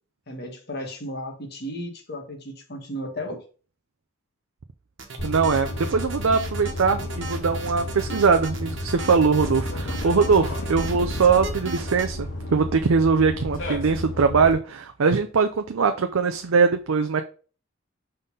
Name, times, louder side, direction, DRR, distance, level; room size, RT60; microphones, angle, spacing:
voice 1, 0.3-3.4, equal, 50° left, 3 dB, 1.5 m, -34 dB
sound 1, 5.0-12.1, right 3 dB, 65° right, 1.3 m, -37 dB
sound 2, 5.2-14.5, left 1 dB, 70° left, 1.9 m, -31 dB
voice 2, 5.2-17.2, right 5 dB, 85° right, 7 dB, 0.5 m, -21 dB
5.5 x 4.0 x 5.4 m, 0.38 s
head